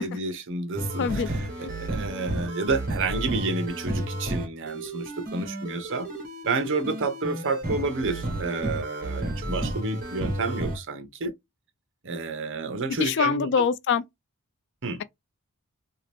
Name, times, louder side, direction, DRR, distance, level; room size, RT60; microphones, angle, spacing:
voice 1, 0.0-6.1 6.5-11.3 12.0-13.7 14.8-15.0, right 3 dB, 55° right, 0.7 m, -30 dB
sound 1, 0.8-10.8, right 1 dB, 40° right, 1.3 m, -32 dB
voice 2, 13.0-14.0, left 6 dB, 55° left, 0.4 m, -24 dB
2.9 x 2.8 x 3.3 m
head